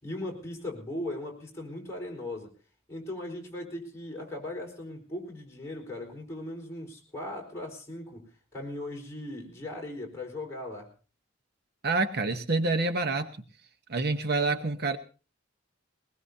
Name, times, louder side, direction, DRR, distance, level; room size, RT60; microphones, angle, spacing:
voice 1, 0.0-2.5 2.9-10.9, left 1 dB, 15° left, -2 dB, 4.3 m, -38 dB
voice 2, 11.8-13.3 13.9-15.0, right 3 dB, 55° right, 8 dB, 1.0 m, -27 dB
21.0 x 20.0 x 2.7 m, 0.35 s
head